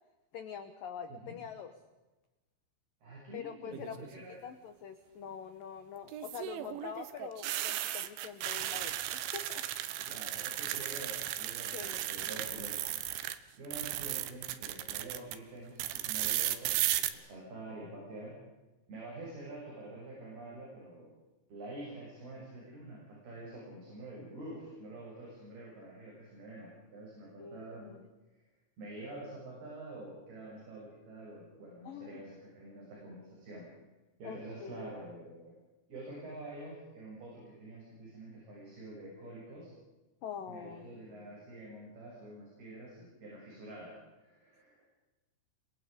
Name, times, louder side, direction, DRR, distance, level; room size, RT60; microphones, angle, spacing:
voice 1, 0.3-1.7 3.3-10.0 11.7-12.1 27.4-28.1 31.8-32.2 34.2-35.0 40.2-41.2, left 7 dB, 80° left, 8 dB, 2.0 m, -45 dB
voice 2, 3.0-4.3 10.1-11.8 12.1-12.8 13.6-18.3 18.9-21.1 21.5-27.9 28.8-33.7 34.2-35.5 35.9-39.7 40.5-43.9 44.2-44.9, right 2 dB, 50° right, -4 dB, 9.2 m, -47 dB
sound 1, 3.7-4.2 6.1-13.4 13.6-15.4 15.8-17.1, right 13 dB, 75° right, 3.4 m, -35 dB
28.5 x 24.5 x 5.2 m, 1.1 s
omnidirectional pair, 5.9 m